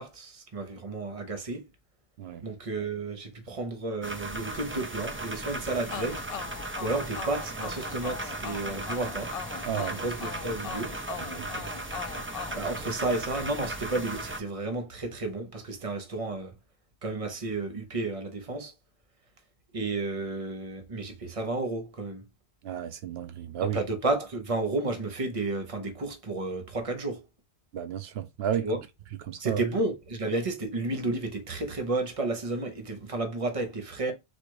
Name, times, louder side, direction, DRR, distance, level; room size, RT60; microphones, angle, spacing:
voice 1, 0.0-1.7 2.4-6.2 6.8-9.3 9.7-11.0 12.5-16.6 17.0-18.7 19.7-22.2 23.6-27.2 28.6-28.8 29.4-34.1, right 2 dB, 35° right, 1.0 m, -32 dB
sound 1, 4.0-14.4, right 1 dB, 15° right, 0.5 m, -37 dB
sound 2, 5.9-13.5, left 7 dB, 55° left, 0.4 m, -41 dB
voice 2, 11.1-11.5 22.6-23.8 27.7-28.7 29.3-29.7, right 9 dB, 85° right, 0.9 m, -32 dB
4.4 x 2.5 x 4.7 m
omnidirectional pair, 1.0 m